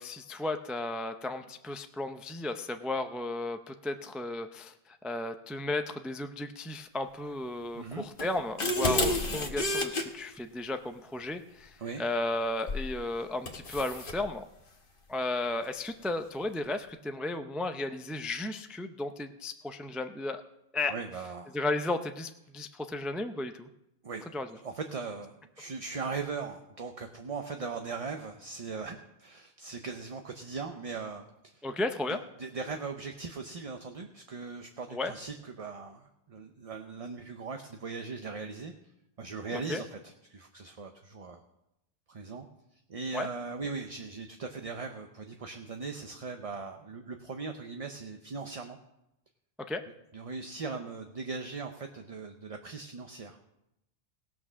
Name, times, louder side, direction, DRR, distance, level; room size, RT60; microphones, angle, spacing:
voice 1, 0.0-4.7 5.0-14.4 15.1-20.4 20.7-20.9 21.5-23.7 24.3-24.5 31.6-32.2 34.9-35.1 39.7-39.8 43.1-43.3 49.7-49.8, left 2 dB, ahead, 7 dB, 0.3 m, -34 dB
voice 2, 7.7-8.1 11.8-12.0 20.9-21.5 24.0-24.3 24.6-31.6 32.1-38.7 39.2-41.4 42.1-42.5 42.9-48.8 50.1-53.4, right 4 dB, 40° right, 5 dB, 0.7 m, -39 dB
sound 1, 8.2-10.0 12.7-12.9 13.5-14.2, left 1 dB, 55° left, 1.3 m, -30 dB
17.5 x 6.1 x 6.2 m, 0.86 s
omnidirectional pair, 1.1 m